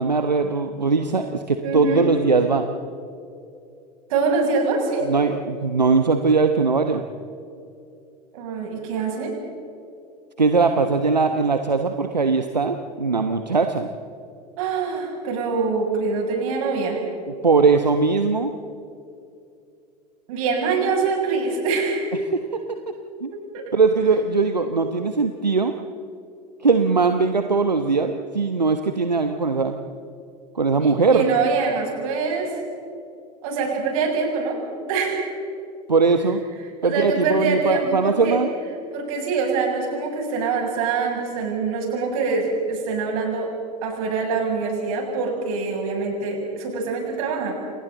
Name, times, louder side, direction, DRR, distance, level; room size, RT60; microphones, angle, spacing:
voice 1, 0.0-2.7 5.0-7.0 10.4-13.9 17.4-18.5 22.3-23.3 23.7-25.8 26.6-29.7 30.5-31.2 35.9-36.4 36.8-38.5, right 4 dB, 85° right, 7 dB, 1.1 m, -20 dB
voice 2, 1.6-2.1 4.1-5.1 8.3-9.3 14.6-17.0 20.3-22.1 23.5-23.6 30.8-32.6 33.4-34.6 34.8-35.3 36.8-38.4 38.9-43.5 43.8-47.5, right 4 dB, 60° right, 0 dB, 7.4 m, -24 dB
29.0 x 29.0 x 4.0 m, 2.5 s
figure-of-eight pair, 80°, 21 cm